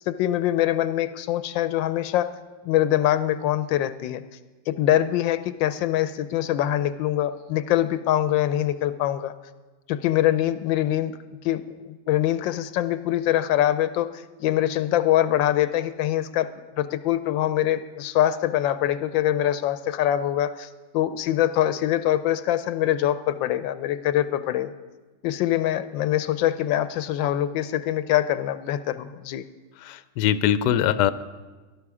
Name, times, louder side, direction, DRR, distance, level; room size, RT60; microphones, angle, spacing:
voice 1, 0.1-2.3 2.6-4.2 4.7-9.3 9.9-11.2 11.4-16.5 16.8-24.7 25.2-29.4, left 12 dB, 90° left, 13 dB, 1.4 m, -24 dB
voice 2, 29.8-31.1, left 10 dB, 75° left, 13 dB, 1.2 m, -22 dB
20.0 x 11.0 x 4.8 m, 1.3 s
omnidirectional pair, 2.0 m